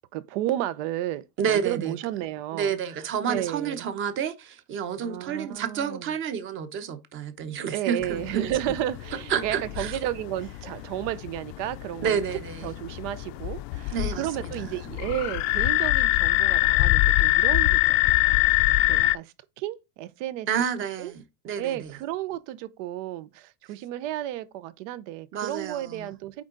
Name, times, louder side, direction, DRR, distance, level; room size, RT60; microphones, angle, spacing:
voice 1, 0.1-3.9 5.0-6.1 7.7-12.2 12.6-20.5 21.0-21.1 21.6-26.4, right 13 dB, 85° right, 0.9 m, -33 dB
voice 2, 1.4-1.9 2.5-8.6 9.3-10.0 12.0-12.7 13.9-14.7 20.5-21.9 25.3-26.1, right 7 dB, 35° right, 0.9 m, -30 dB
sound 1, 8.0-19.2, left 19 dB, 75° left, 0.6 m, -25 dB
8.6 x 3.8 x 3.8 m
cardioid pair, 175°, 36 cm